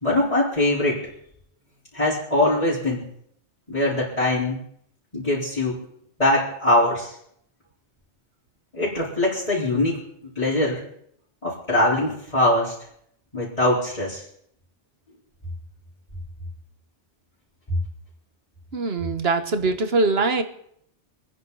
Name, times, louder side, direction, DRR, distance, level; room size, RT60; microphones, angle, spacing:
voice 1, 0.0-1.1 1.9-3.1 3.7-4.6 5.1-5.8 6.2-7.2 8.7-10.0 10.4-10.8 11.4-12.7 13.3-14.2 17.7-17.8, left 1 dB, 30° left, -10 dB, 4.3 m, -22 dB
voice 2, 18.7-20.4, right 3 dB, 60° right, 8 dB, 1.5 m, -22 dB
26.5 x 10.0 x 4.1 m, 0.70 s
omnidirectional pair, 1.2 m